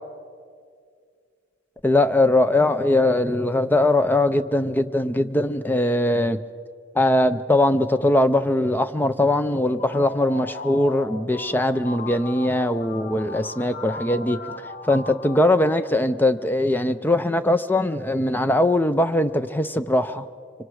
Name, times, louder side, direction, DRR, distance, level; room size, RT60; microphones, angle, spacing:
voice 1, 1.8-6.4 7.0-14.4 14.9-20.3, left 1 dB, 10° left, 0.5 m, -21 dB
sound 1, 9.6-16.4, left 3 dB, 40° left, 1.0 m, -37 dB
25.0 x 24.5 x 4.8 m
head